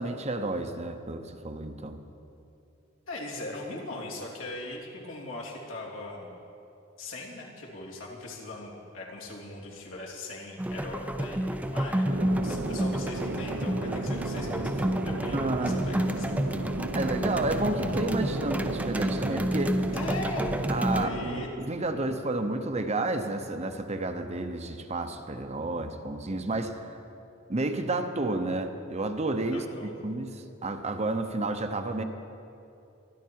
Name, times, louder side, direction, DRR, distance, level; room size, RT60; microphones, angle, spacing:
voice 1, 0.0-2.0 15.3-16.0 16.9-19.8 20.7-21.1 21.6-26.9 27.5-29.6 30.0-32.0, right 2 dB, 35° right, 7 dB, 0.8 m, -31 dB
voice 2, 3.1-6.3 7.0-12.1 12.4-16.3 19.9-20.6 20.9-21.5 21.9-22.1 29.5-30.0, left 2 dB, 80° left, -3 dB, 3.1 m, -40 dB
sound 1, 10.6-21.1, right 1 dB, 10° right, 0.6 m, -30 dB
sound 2, 12.1-21.5, right 2 dB, 85° right, 0.9 m, -35 dB
26.0 x 10.5 x 4.7 m, 2.7 s
head